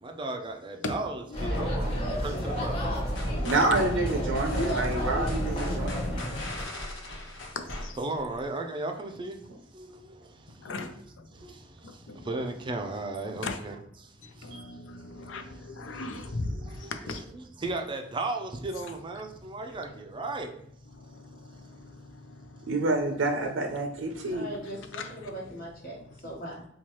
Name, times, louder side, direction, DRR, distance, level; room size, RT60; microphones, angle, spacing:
voice 1, 0.0-3.8 5.6-5.7 7.2-7.6 8.0-9.5 9.7-10.9 11.3-14.8 15.8-16.1 16.5-20.6, right 2 dB, 25° right, 0.4 m, -37 dB
voice 2, 1.3-2.0 7.6-8.0 10.6-11.3 11.8-12.3 13.4-13.6 14.2-17.2 20.9-22.7 24.1-25.3 26.0-26.3, left 3 dB, 90° left, 0.5 m, -39 dB
sound 1, 1.3-6.6, equal, 35° left, 1.0 m, -31 dB
sound 2, 3.2-8.4, left 1 dB, 75° left, 1.0 m, -39 dB
voice 3, 3.4-6.2 14.5-14.6 22.7-24.5, right 2 dB, 90° right, 0.5 m, -28 dB
voice 4, 4.6-6.0 24.3-26.0 26.2-26.7, equal, 50° left, 1.3 m, -37 dB
4.3 x 2.3 x 3.0 m
head